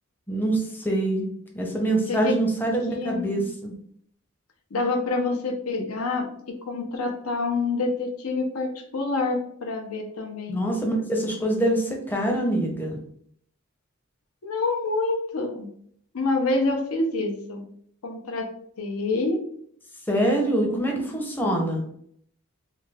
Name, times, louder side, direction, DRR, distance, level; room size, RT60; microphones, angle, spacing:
voice 1, 0.3-1.3 1.5-3.7 10.5-13.0 20.1-21.8, right 1 dB, 10° left, 0 dB, 0.6 m, -25 dB
voice 2, 2.9-3.4 4.7-10.6 14.4-15.7 16.1-17.6 18.0-18.5 18.8-19.4 20.7-21.1, left 3 dB, 85° left, 3 dB, 0.6 m, -27 dB
3.3 x 2.2 x 3.3 m, 0.66 s
head